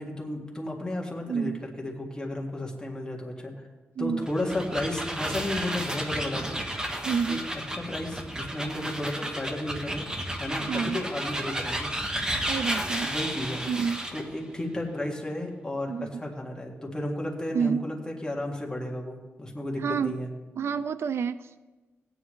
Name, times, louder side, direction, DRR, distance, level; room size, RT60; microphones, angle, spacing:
voice 1, 0.0-1.5 1.8-3.5 4.0-6.6 7.3-7.4 7.8-10.1 10.4-11.9 13.0-13.6 14.1-15.9 16.2-20.3, left 1 dB, 15° left, -1 dB, 1.9 m, -33 dB
voice 2, 1.3-1.6 4.0-4.3 7.0-7.5 10.7-11.0 12.5-13.1 13.7-14.0 15.9-16.1 17.5-17.9 19.8-20.2 20.6-21.7, right 6 dB, 70° right, 13 dB, 0.4 m, -29 dB
sound 1, 4.2-14.3, right 1 dB, 15° right, 1.1 m, -32 dB
16.5 x 9.4 x 3.2 m, 1.2 s
wide cardioid pair, 125°, 5 cm